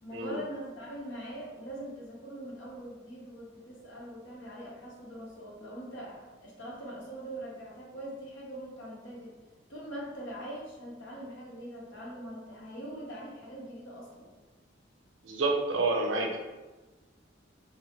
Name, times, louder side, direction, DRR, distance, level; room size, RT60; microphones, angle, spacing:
voice 1, 0.0-9.4 9.7-14.3, right 1 dB, 80° left, -4 dB, 0.9 m, -42 dB
voice 2, 15.2-16.4, right 3 dB, 85° right, 1 dB, 0.5 m, -28 dB
3.0 x 2.0 x 2.8 m, 1.2 s
head